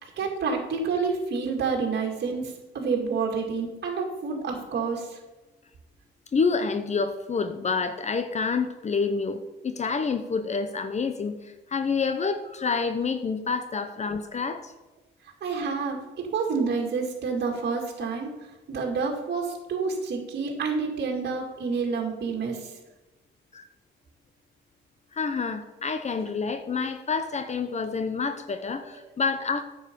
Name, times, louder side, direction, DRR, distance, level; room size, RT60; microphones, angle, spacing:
voice 1, 0.0-5.2 15.4-18.3 18.7-22.7, right 5 dB, 55° right, 0 dB, 2.3 m, -28 dB
voice 2, 6.3-14.7 23.5-23.6 25.1-29.6, left 5 dB, 35° left, 10 dB, 0.8 m, -28 dB
9.6 x 7.2 x 5.3 m, 1.1 s
cardioid pair, 90°, 20 cm